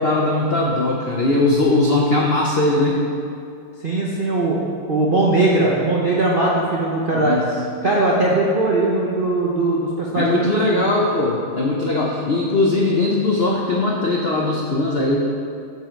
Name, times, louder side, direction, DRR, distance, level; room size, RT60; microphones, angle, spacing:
voice 1, 0.0-3.0 7.1-7.5 10.1-15.2, left 2 dB, 70° left, -2 dB, 0.5 m, -19 dB
voice 2, 3.8-4.6 4.9-7.4 7.8-10.8, right 2 dB, 55° right, -5 dB, 0.5 m, -19 dB
8.9 x 7.4 x 4.5 m, 2.4 s
omnidirectional pair, 2.3 m